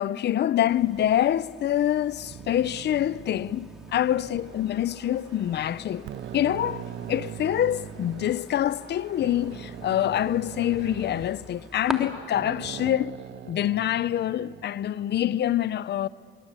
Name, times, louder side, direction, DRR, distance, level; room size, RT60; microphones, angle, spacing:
voice 1, 0.0-6.1 6.3-13.1 13.5-16.1, left 11 dB, 60° left, 0.6 m, -26 dB
sound 1, 0.7-11.9, equal, ahead, 2.7 m, -45 dB
sound 2, 2.1-5.0 5.5-5.6 6.0-8.4 9.2-12.0 12.3-14.7, right 11 dB, 65° right, 0.6 m, -41 dB
sound 3, 4.1-11.3, right 4 dB, 80° right, 5.3 m, -51 dB
24.5 x 23.5 x 8.1 m
cardioid pair, 90°, 20 cm